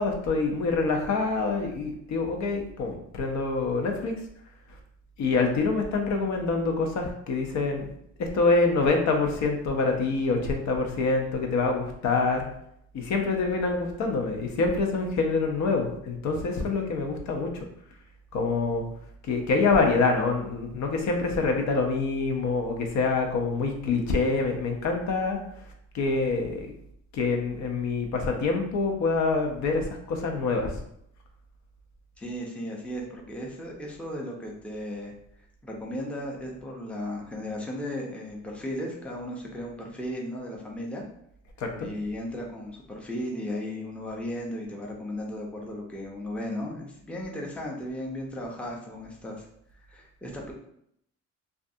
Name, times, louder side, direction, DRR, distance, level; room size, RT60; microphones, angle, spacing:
voice 1, 0.0-4.1 5.2-7.9 8.2-12.5 12.9-17.6 18.3-18.8 19.3-25.4 25.9-26.7 27.1-30.7 41.6-41.9, left 3 dB, 65° left, 3 dB, 0.6 m, -26 dB
voice 2, 32.2-35.1 35.6-41.0 41.8-49.5 49.9-50.5, left 1 dB, 5° left, -1 dB, 0.5 m, -35 dB
2.5 x 2.3 x 2.6 m, 0.73 s
cardioid pair, 90°, 30 cm